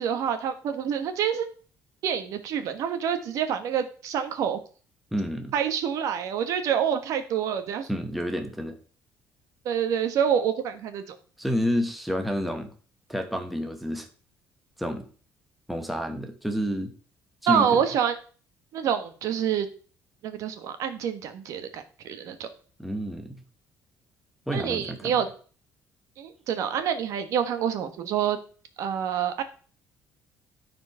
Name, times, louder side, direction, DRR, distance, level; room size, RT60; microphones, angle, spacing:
voice 1, 0.0-1.5 2.0-4.6 5.5-7.9 9.6-11.1 17.5-18.1 18.7-19.7 20.2-22.5 24.5-25.3 26.2-28.4 28.8-29.4, right 8 dB, 60° right, 9 dB, 1.3 m, -27 dB
voice 2, 5.1-5.5 7.9-8.8 11.4-12.7 13.1-14.1 14.8-15.1 15.7-16.9 17.4-17.8 22.8-23.4 24.5-25.2, equal, ahead, 5 dB, 0.9 m, -29 dB
12.5 x 4.6 x 5.6 m, 0.40 s
cardioid pair, 175°, 6 cm